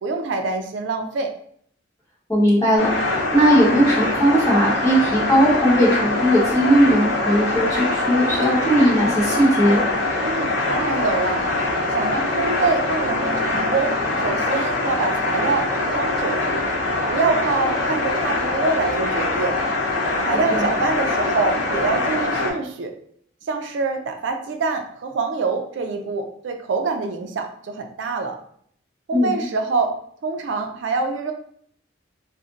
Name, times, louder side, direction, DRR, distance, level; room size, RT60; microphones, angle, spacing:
voice 1, 0.0-1.3 10.2-11.5 11.9-16.5 17.1-19.6 20.2-22.9 23.5-28.4 29.1-30.0 30.2-31.3, right 4 dB, 70° right, 4 dB, 0.4 m, -25 dB
voice 2, 2.3-3.0 3.3-9.8 20.5-20.6 29.1-29.3, equal, 15° left, -6 dB, 0.9 m, -18 dB
sound 1, 2.8-22.5, left 2 dB, 75° left, 0.9 m, -23 dB
2.5 x 2.1 x 3.8 m, 0.64 s
head